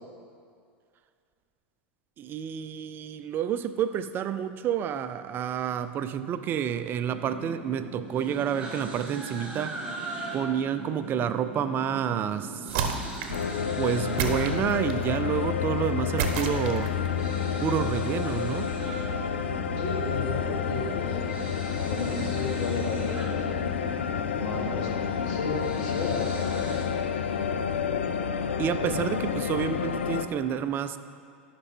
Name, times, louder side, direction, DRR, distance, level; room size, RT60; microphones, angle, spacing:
voice 1, 2.2-9.9 10.3-12.8 13.3-13.4 13.8-17.1 17.6-18.7 28.6-31.0, right 9 dB, 35° right, 11 dB, 0.4 m, -29 dB
sound 1, 7.1-26.9, right 2 dB, 15° right, 2.1 m, -40 dB
sound 2, 12.7-13.5 14.2-15.1 16.2-17.1, right 6 dB, 55° right, 0.9 m, -31 dB
sound 3, 13.3-30.3, left 7 dB, 75° left, 0.5 m, -29 dB
voice 2, 19.8-21.2 21.8-23.5 24.3-26.4, left 3 dB, 55° left, 0 dB, 1.3 m, -34 dB
13.0 x 5.8 x 3.6 m, 2.3 s
hypercardioid pair, 90°, 6 cm